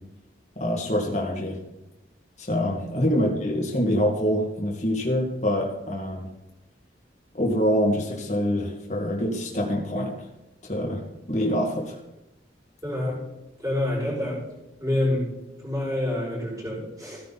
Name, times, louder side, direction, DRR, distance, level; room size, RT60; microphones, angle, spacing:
voice 1, 0.6-1.6 2.4-6.3 7.3-10.1 10.6-11.0 11.3-12.0, equal, 40° left, -1 dB, 2.1 m, -25 dB
voice 2, 12.8-13.2 13.6-14.4 14.8-17.2, left 1 dB, 20° right, -6 dB, 5.8 m, -27 dB
16.0 x 9.8 x 4.2 m, 0.96 s
head